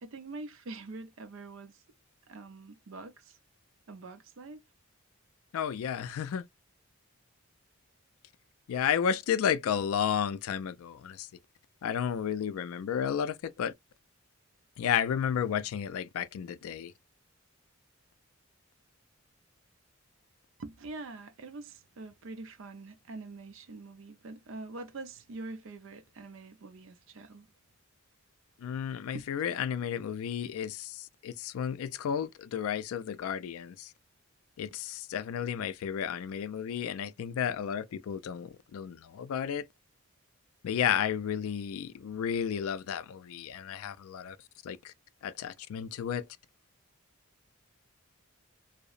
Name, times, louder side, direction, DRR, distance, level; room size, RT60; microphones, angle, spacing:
voice 1, 0.0-1.8 2.3-3.4 3.9-4.6 20.6-27.5 29.1-29.2, right 3 dB, 60° right, 0.4 m, -44 dB
voice 2, 5.5-6.4 8.7-11.3 11.8-13.7 14.8-16.9 28.6-33.9 34.6-39.6 40.6-44.4 44.6-44.9 45.2-46.3, left 8 dB, 75° left, 0.3 m, -32 dB
2.7 x 2.0 x 2.3 m
head